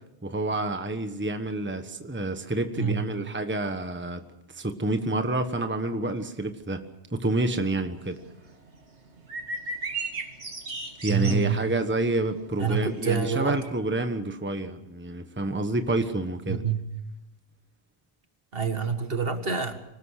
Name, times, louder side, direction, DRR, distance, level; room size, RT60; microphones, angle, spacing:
voice 1, 0.2-4.2 4.5-6.8 7.1-8.2 11.0-16.6, right 2 dB, 10° right, 7 dB, 1.3 m, -28 dB
sound 1, 8.0-13.7, right 3 dB, 80° right, 2.5 m, -37 dB
voice 2, 11.1-11.7 12.6-13.6 16.5-16.9 18.5-19.8, right 6 dB, 55° right, 7 dB, 2.0 m, -27 dB
25.0 x 19.0 x 6.6 m, 0.90 s
omnidirectional pair, 1.1 m